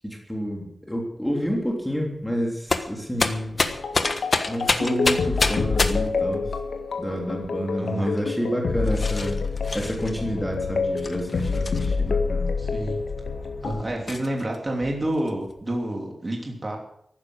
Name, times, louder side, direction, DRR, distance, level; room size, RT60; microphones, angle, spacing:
voice 1, 0.0-3.7 4.5-6.5 7.0-9.4 9.7-12.5, equal, 5° left, 0 dB, 3.2 m, -29 dB
sound 1, 1.5-1.7 2.7-6.2 7.0-7.8 8.2-8.3 8.8-10.1 11.0-12.1 12.8-12.9 13.3-13.4 14.1-14.6 14.9-15.8, left 3 dB, 40° left, 1.3 m, -28 dB
sound 2, 3.7-13.8, left 4 dB, 90° left, 1.5 m, -27 dB
voice 2, 7.8-8.1 12.6-13.0 13.6-16.8, right 1 dB, 25° right, 0 dB, 3.0 m, -29 dB
15.0 x 12.0 x 6.3 m, 0.74 s
wide cardioid pair, 150°, 0 cm